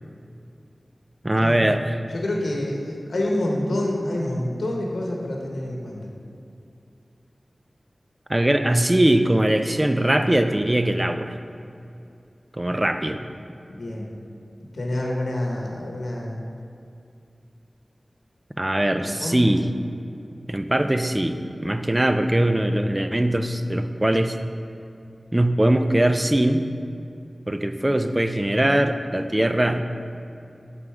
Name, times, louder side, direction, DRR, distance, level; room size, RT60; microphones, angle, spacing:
voice 1, 1.2-2.0 8.3-11.4 12.6-13.2 18.6-19.7 20.5-24.4 25.3-26.7 27.5-29.8, right 1 dB, 20° right, 8 dB, 0.4 m, -21 dB
voice 2, 2.1-6.1 13.7-14.1 14.6-16.4 19.0-19.4, left 1 dB, 90° left, -1 dB, 0.9 m, -27 dB
7.5 x 3.9 x 4.7 m, 2.5 s
wide cardioid pair, 70°, 0 cm